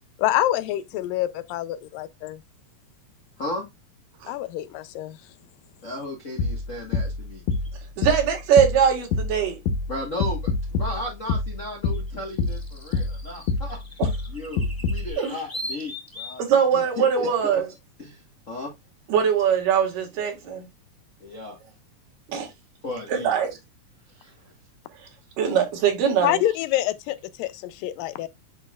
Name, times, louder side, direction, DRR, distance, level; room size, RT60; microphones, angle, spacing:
voice 1, 0.2-2.4 4.3-5.2 26.2-28.3, left 14 dB, 85° left, 2.3 m, -26 dB
voice 2, 5.8-7.4 9.9-13.8 14.3-16.4 16.7-17.6 18.0-18.7 21.2-21.6 22.8-23.3 24.1-24.5, left 1 dB, 50° left, 0.9 m, -35 dB
sound 1, 6.4-15.1, left 4 dB, 70° left, 1.9 m, -27 dB
sound 2, 7.5-7.7 10.1-10.2 11.9-16.5, left 1 dB, 10° left, 1.7 m, -39 dB
voice 3, 8.0-9.6 14.0-14.1 15.2-15.3 16.4-17.6 19.1-20.6 22.3-22.5 23.1-23.5 25.4-26.4, right 8 dB, 75° right, 3.2 m, -21 dB
9.9 x 4.1 x 2.4 m
omnidirectional pair, 3.9 m